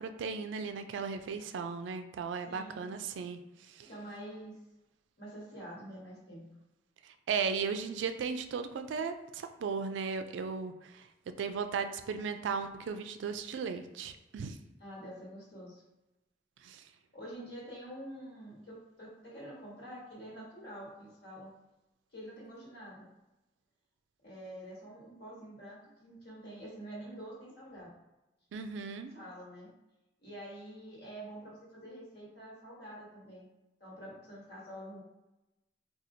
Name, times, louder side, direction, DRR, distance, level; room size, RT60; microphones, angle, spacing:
voice 1, 0.0-3.4 3.7-3.9 7.3-11.0 11.4-14.6 16.6-16.8 28.5-29.1, right 5 dB, 80° right, 8 dB, 0.3 m, -36 dB
voice 2, 2.4-2.9 3.9-4.6 5.2-6.4 14.8-15.8 17.1-21.5 22.1-23.1 24.2-27.9 29.1-29.7 30.2-33.5 33.8-35.0, right 1 dB, 60° left, -5 dB, 1.4 m, -47 dB
4.2 x 2.3 x 2.6 m, 0.97 s
head